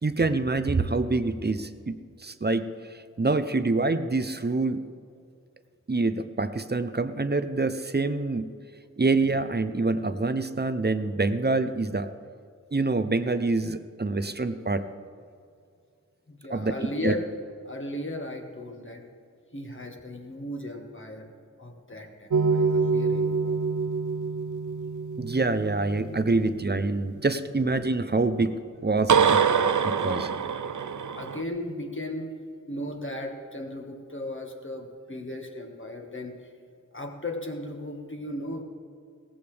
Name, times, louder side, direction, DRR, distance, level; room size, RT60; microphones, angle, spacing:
voice 1, 0.0-1.9 2.2-4.8 5.9-8.5 9.0-12.1 12.7-14.9 16.5-16.7 17.0-17.1 25.2-28.6 28.8-29.4 29.8-30.3, right 3 dB, 35° right, 11 dB, 0.7 m, -26 dB
voice 2, 16.3-17.2 17.6-19.0 19.5-21.3 21.6-23.6 26.0-26.2 29.8-29.9 31.1-32.3 32.7-36.5 36.9-38.6, left 1 dB, 40° left, 2 dB, 1.8 m, -36 dB
sound 1, 22.3-26.6 29.1-31.4, right 5 dB, 75° right, 0.5 m, -25 dB
18.0 x 15.0 x 3.5 m, 2.3 s
wide cardioid pair, 65°, 31 cm